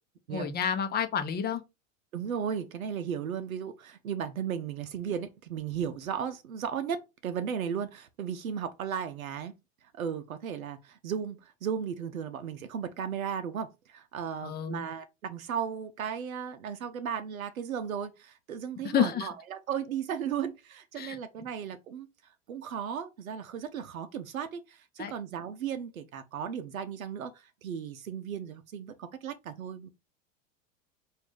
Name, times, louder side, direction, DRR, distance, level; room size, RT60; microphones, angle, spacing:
voice 1, 0.3-1.6 14.4-14.8 18.8-19.3 21.0-21.2 25.0-25.1, left 8 dB, 25° left, 0.9 m, -29 dB
voice 2, 2.1-9.5 9.9-22.1 22.5-29.9, right 8 dB, 80° right, 0.7 m, -35 dB
4.7 x 2.6 x 3.7 m
figure-of-eight pair, 85°, 40 cm